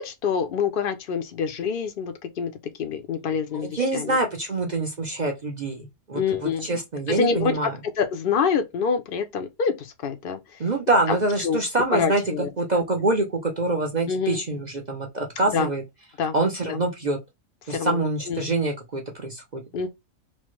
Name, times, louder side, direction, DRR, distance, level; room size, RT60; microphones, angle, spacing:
voice 1, 0.0-2.5 2.8-4.2 6.1-6.7 7.1-7.6 8.0-10.4 11.4-11.6 11.9-12.8 14.1-14.4 15.5-15.7 16.2-16.3 16.7-16.8 17.7-18.0 18.3-18.5 19.7-19.9, left 6 dB, 55° left, 0.6 m, -26 dB
voice 2, 3.5-7.7 10.6-15.8 16.3-17.2 17.7-19.6, right 2 dB, 50° right, 0.5 m, -25 dB
3.1 x 2.1 x 3.0 m
omnidirectional pair, 1.5 m